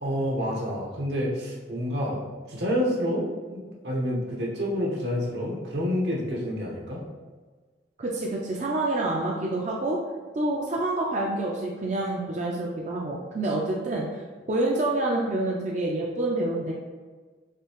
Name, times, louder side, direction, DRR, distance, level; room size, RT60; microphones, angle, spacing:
voice 1, 0.0-2.2 2.5-7.0, equal, 80° right, -2 dB, 1.1 m, -28 dB
voice 2, 8.0-10.0 10.3-14.1 14.5-16.7, right 2 dB, 40° right, -2 dB, 0.4 m, -27 dB
6.6 x 2.7 x 3.0 m, 1.4 s
head